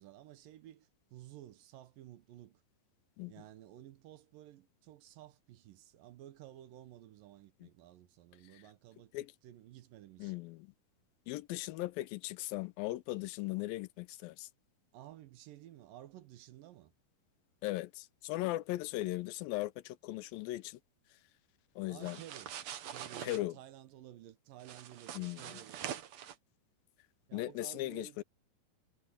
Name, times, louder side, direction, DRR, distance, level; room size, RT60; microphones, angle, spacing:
voice 1, 0.0-2.6 3.3-9.1 9.4-10.3 14.9-16.9 21.9-22.5 22.9-25.9 27.3-28.2, right 13 dB, 75° right, 2.6 m, -54 dB
voice 2, 10.2-10.7 11.3-14.5 17.6-20.8 21.8-22.2 23.2-23.6 25.1-25.5 27.3-28.2, left 17 dB, 90° left, 2.4 m, -38 dB
sound 1, 22.0-23.4 24.6-26.4, right 10 dB, 60° right, 2.1 m, -44 dB
omnidirectional pair, 4.1 m